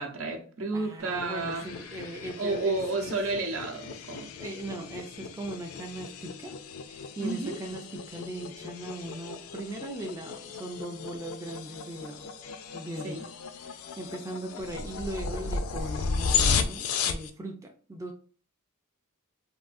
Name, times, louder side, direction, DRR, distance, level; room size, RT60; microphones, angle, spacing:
voice 1, 0.0-1.6 2.4-4.3 7.2-7.6 13.0-13.2, right 3 dB, 65° right, 3 dB, 0.7 m, -31 dB
voice 2, 0.7-3.1 4.4-6.6 6.9-12.3 12.6-13.2 13.5-18.1, right 1 dB, 15° right, 2 dB, 0.3 m, -39 dB
sound 1, 1.0-17.3, left 5 dB, 80° left, 0.4 m, -34 dB
3.6 x 2.3 x 2.5 m, 0.41 s
head